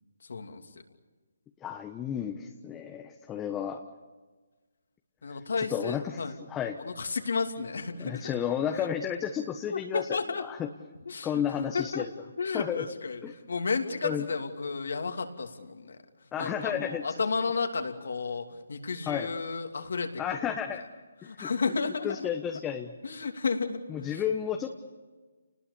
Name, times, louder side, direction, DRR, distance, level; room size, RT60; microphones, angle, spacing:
voice 1, 0.3-0.6 5.2-6.3 6.8-8.4 8.8-8.9 9.7-10.4 11.1-12.1 12.4-13.2 13.5-16.0 16.4-20.2 20.7-20.8 21.2-22.3 23.0-24.2, left 4 dB, 70° left, 5 dB, 2.9 m, -32 dB
voice 2, 1.6-3.8 5.3-6.2 6.5-6.8 8.0-10.1 10.5-10.7 11.2-12.1 12.5-12.8 13.2-13.3 14.0-14.2 16.3-17.0 19.1-19.3 20.2-20.8 21.2-21.5 22.0-22.9 23.9-24.7, left 9 dB, 15° left, 4 dB, 1.1 m, -32 dB
30.0 x 20.0 x 7.1 m, 1.3 s
hypercardioid pair, 155°, 0 cm